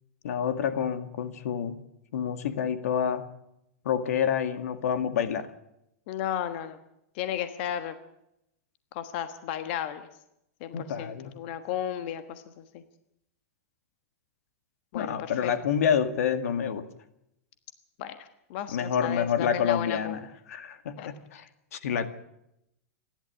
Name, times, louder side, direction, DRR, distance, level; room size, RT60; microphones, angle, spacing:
voice 1, 0.2-1.8 2.1-3.3 3.8-5.5 10.7-11.3 14.9-16.8 18.7-21.5 21.7-22.1, left 8 dB, 80° left, 10 dB, 2.2 m, -28 dB
voice 2, 6.1-6.8 7.1-7.9 8.9-10.0 10.6-12.6 14.9-15.5 18.0-20.2 21.0-21.1, left 10 dB, 45° left, 9 dB, 1.4 m, -34 dB
29.0 x 12.0 x 8.7 m, 0.82 s
supercardioid pair, 165°, 8 cm